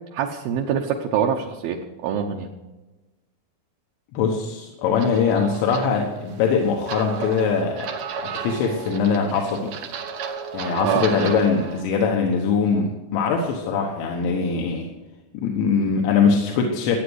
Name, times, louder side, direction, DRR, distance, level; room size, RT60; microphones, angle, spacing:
voice 1, 0.1-2.5 10.8-11.1, right 8 dB, 75° right, 2 dB, 2.3 m, -25 dB
voice 2, 4.2-7.9 8.2-9.7 10.5-14.9 15.3-17.0, left 5 dB, 85° left, 1 dB, 3.6 m, -22 dB
sound 1, 5.0-11.8, right 6 dB, 90° right, 1.5 m, -33 dB
15.5 x 9.0 x 8.0 m, 1.1 s
omnidirectional pair, 5.2 m